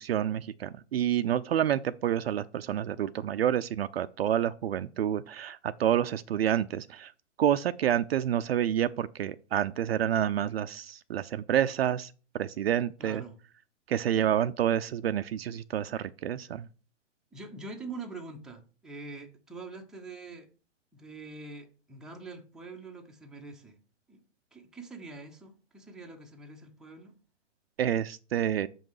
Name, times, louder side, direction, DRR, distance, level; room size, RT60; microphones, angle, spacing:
voice 1, 0.0-7.1 7.4-13.2 13.9-16.7 27.8-28.7, right 10 dB, 50° right, 0.5 m, -28 dB
voice 2, 13.0-13.4 17.3-20.5 20.9-23.8 24.1-24.2 24.5-27.1, right 3 dB, ahead, 0.8 m, -44 dB
7.1 x 5.2 x 4.8 m
hypercardioid pair, 130°, 38 cm